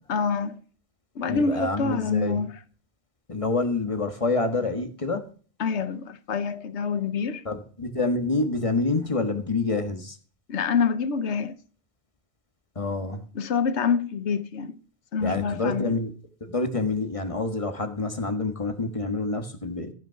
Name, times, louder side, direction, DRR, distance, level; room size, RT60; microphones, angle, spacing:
voice 1, 0.1-0.6 1.1-2.6 5.6-7.4 10.5-11.6 13.3-14.8 15.1-15.9, left 5 dB, 75° left, 1.2 m, -26 dB
voice 2, 1.3-2.4 3.3-5.2 7.4-10.2 12.7-13.2 15.2-16.1 16.4-19.9, left 3 dB, 30° left, 1.5 m, -27 dB
14.0 x 6.3 x 5.8 m
omnidirectional pair, 1.2 m